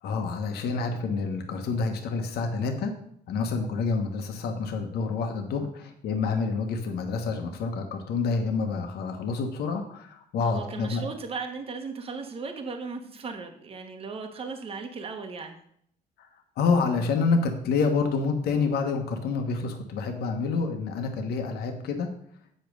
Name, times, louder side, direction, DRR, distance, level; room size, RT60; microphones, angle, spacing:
voice 1, 0.0-2.9 3.3-11.0 16.2-16.3 16.6-22.1, left 4 dB, 70° left, 4 dB, 1.4 m, -28 dB
voice 2, 10.4-15.6, right 4 dB, 35° right, 4 dB, 1.3 m, -36 dB
8.0 x 5.3 x 6.3 m, 0.67 s
cardioid pair, 110°, 17 cm